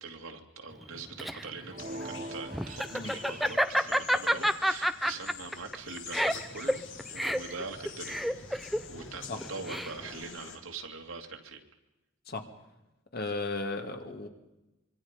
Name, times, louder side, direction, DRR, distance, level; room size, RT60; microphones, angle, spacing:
voice 1, 0.0-8.2 8.9-11.6, right 4 dB, 75° right, 3 dB, 2.6 m, -43 dB
Laughter, 0.8-10.2, equal, ahead, 0.7 m, -30 dB
sound 1, 1.7-3.8, right 1 dB, 35° right, 1.1 m, -43 dB
sound 2, 1.8-10.6, left 6 dB, 60° left, 2.8 m, -47 dB
voice 2, 13.1-14.3, left 3 dB, 45° left, 5 dB, 2.3 m, -35 dB
25.5 x 23.5 x 5.2 m, 0.98 s
head